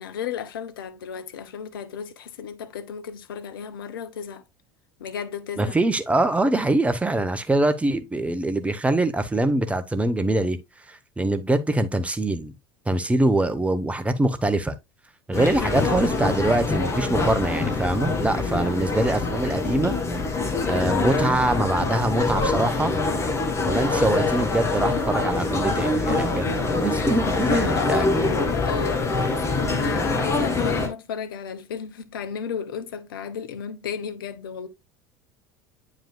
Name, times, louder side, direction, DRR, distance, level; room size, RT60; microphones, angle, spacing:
voice 1, 0.0-4.4 5.0-5.7 26.4-26.7 27.5-34.7, left 7 dB, 70° left, 0.8 m, -33 dB
voice 2, 5.6-10.6 10.9-12.5 12.9-14.7 15.3-19.9 20.7-22.9 23.6-28.3, right 2 dB, 10° right, 0.8 m, -23 dB
sound 1, 15.3-30.9, left 3 dB, 20° left, 1.9 m, -24 dB
9.0 x 4.9 x 2.2 m
figure-of-eight pair, 70°, 12 cm